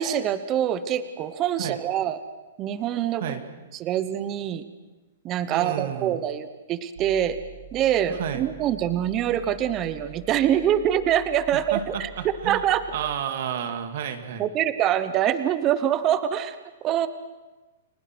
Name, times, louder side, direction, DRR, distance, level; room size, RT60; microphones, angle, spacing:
voice 1, 0.0-2.2 2.6-3.4 3.7-4.6 5.2-7.4 7.7-12.1 12.4-12.8 14.4-17.1, right 10 dB, 20° right, 13 dB, 0.9 m, -25 dB
voice 2, 5.5-6.2 8.1-8.4 11.5-12.7 12.9-14.4, right 9 dB, 45° right, 8 dB, 2.4 m, -31 dB
sound 1, 7.0-13.1, right 4 dB, 70° right, 3.3 m, -45 dB
30.0 x 22.0 x 6.1 m, 1.2 s
hypercardioid pair, 170°, 0 cm